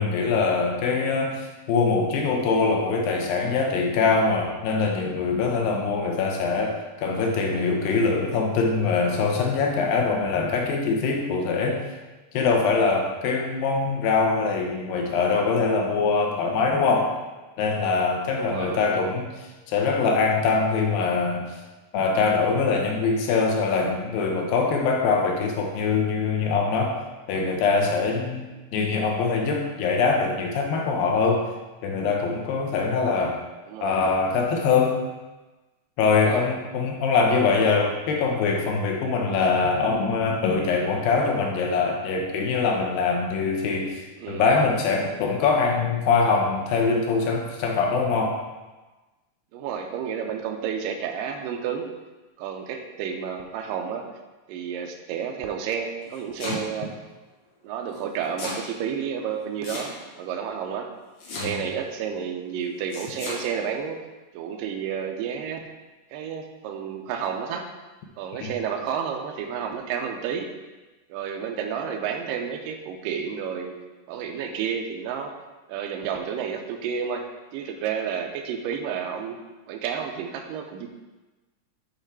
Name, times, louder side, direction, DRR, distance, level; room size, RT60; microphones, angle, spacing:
voice 1, 0.0-11.8 12.3-17.1 17.6-21.5 21.9-27.0 27.3-31.5 31.8-33.4 33.8-35.0 36.0-48.4 56.5-56.6 61.4-61.6 68.4-68.5, left 4 dB, 80° left, 1 dB, 2.6 m, -23 dB
voice 2, 18.4-19.0 33.7-34.2 36.2-36.5 44.2-44.5 49.5-51.9 52.4-54.1 54.5-56.9 57.6-60.9 61.4-64.0 64.3-65.6 66.1-67.7 68.2-70.5 71.1-73.7 74.1-75.3 75.7-77.3 77.5-79.4 79.7-80.9, right 7 dB, 80° right, 3 dB, 2.2 m, -31 dB
Domestic sounds home sounds, 55.9-56.9 57.9-58.7 59.6-60.2 61.2-61.8 62.9-63.4, left 2 dB, 60° left, 2.6 m, -35 dB
8.0 x 4.3 x 4.7 m, 1.2 s
omnidirectional pair, 4.1 m